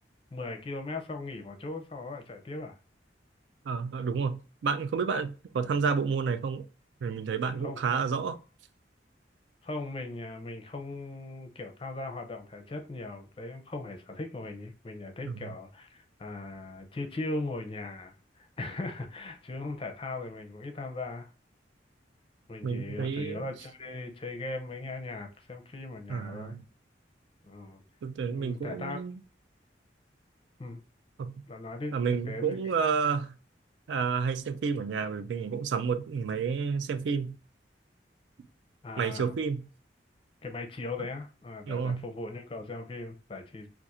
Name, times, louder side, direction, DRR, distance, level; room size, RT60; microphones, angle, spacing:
voice 1, 0.3-2.8 5.6-5.7 7.6-7.8 9.6-21.3 22.5-26.6 27.4-27.8 28.3-29.0 30.6-30.8 31.5-31.9 32.3-32.6 38.8-39.3 40.4-43.7, left 2 dB, 30° left, 0.5 m, -39 dB
voice 2, 3.6-6.7 7.0-8.4 15.3-15.5 22.6-23.4 26.1-26.6 28.0-29.2 31.2-31.4 31.9-33.4 33.9-37.4 39.0-39.7 41.7-42.0, right 5 dB, 80° right, 0.3 m, -30 dB
2.4 x 2.4 x 4.1 m
head